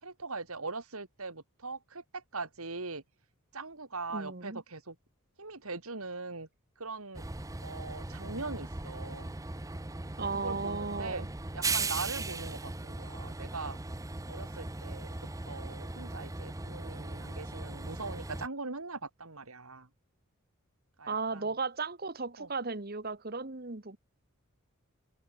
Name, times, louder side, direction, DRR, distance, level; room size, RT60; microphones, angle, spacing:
voice 1, 0.0-3.0 3.5-5.0 5.4-6.5 6.8-7.3 7.6-9.3 10.3-11.3 11.5-13.8 14.3-19.9 21.0-21.6 22.4-22.5, right 3 dB, 75° right, 3.0 m, -41 dB
voice 2, 4.1-4.6 10.2-11.3 21.1-24.0, right 4 dB, 45° right, 1.3 m, -35 dB
Train, 7.1-18.5, right 3 dB, 15° right, 0.7 m, -38 dB
head